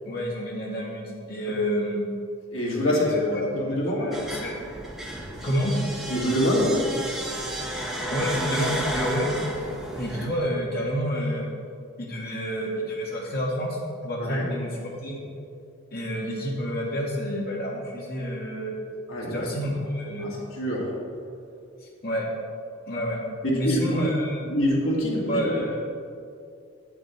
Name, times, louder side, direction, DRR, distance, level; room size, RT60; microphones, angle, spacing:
voice 1, 0.1-2.0 2.8-4.6 5.4-5.8 8.1-9.4 10.0-11.5 12.0-15.2 15.9-18.7 19.3-20.3 21.8-22.3 22.9-23.3 23.5-24.4 25.3-25.8, equal, 50° left, -3 dB, 1.9 m, -29 dB
voice 2, 2.5-4.1 6.1-6.8 14.2-14.4 19.1-19.5 20.6-20.9 23.4-24.0 24.5-25.4, equal, 75° left, -4 dB, 2.2 m, -25 dB
sound 1, 4.1-10.3, right 1 dB, ahead, 0.9 m, -32 dB
8.3 x 7.5 x 4.5 m, 2.5 s
head